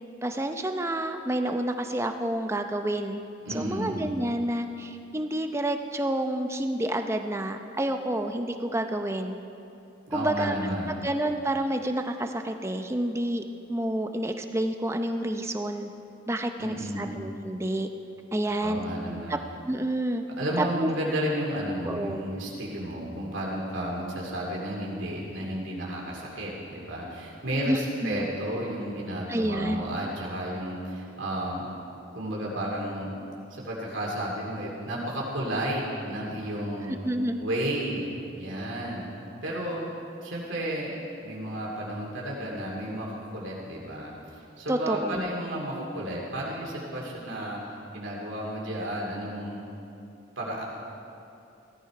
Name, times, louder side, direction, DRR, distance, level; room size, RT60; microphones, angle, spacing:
voice 1, 0.2-3.2 3.5-9.4 10.1-10.6 11.0-13.4 13.7-15.9 16.3-17.9 18.3-18.8 19.3-19.4 19.7-20.2 20.6-20.9 21.8-22.2 27.7-28.3 29.3-29.8 36.9-37.4 44.7-45.2, right 1 dB, 15° right, 6 dB, 0.6 m, -29 dB
voice 2, 3.4-4.1 10.1-11.1 16.6-17.2 18.6-19.4 20.4-31.7 32.1-33.1 33.5-37.0 37.4-39.1 39.4-39.8 40.2-41.0 41.2-44.1 44.6-47.6 47.9-49.6 50.4-50.6, right 1 dB, 70° right, -4 dB, 2.4 m, -32 dB
17.0 x 13.5 x 4.8 m, 2.7 s
head